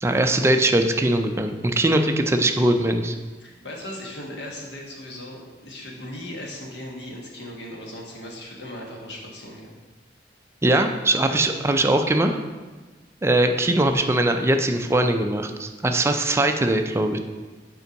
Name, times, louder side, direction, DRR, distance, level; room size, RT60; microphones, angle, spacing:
voice 1, 0.0-3.2 10.6-12.4 13.2-17.2, right 1 dB, 15° right, 6 dB, 0.4 m, -21 dB
voice 2, 3.4-9.7 11.3-11.4, left 1 dB, 65° left, -1 dB, 1.4 m, -37 dB
5.5 x 4.5 x 5.1 m, 1.3 s
head